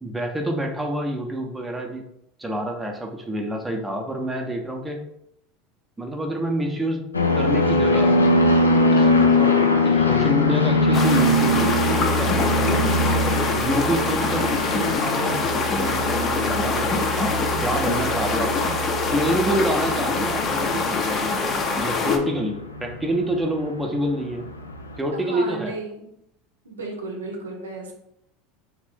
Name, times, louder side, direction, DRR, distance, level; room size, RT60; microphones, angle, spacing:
voice 1, 0.0-2.0 2.4-5.0 6.0-7.0 7.3-8.2 8.9-9.6 9.8-13.0 13.5-18.6 19.1-24.5 25.0-25.8, right 1 dB, 10° right, 2 dB, 0.6 m, -27 dB
sound 1, 7.1-24.2 24.4-24.9, left 1 dB, 90° left, 0.3 m, -22 dB
voice 2, 9.3-9.8 22.0-22.1 25.1-26.1 26.6-27.9, right 2 dB, 80° right, 1 dB, 0.6 m, -35 dB
sound 2, 10.9-22.2, left 4 dB, 35° left, 0.5 m, -24 dB
2.9 x 2.5 x 3.4 m, 0.77 s
figure-of-eight pair, 80°, 0 cm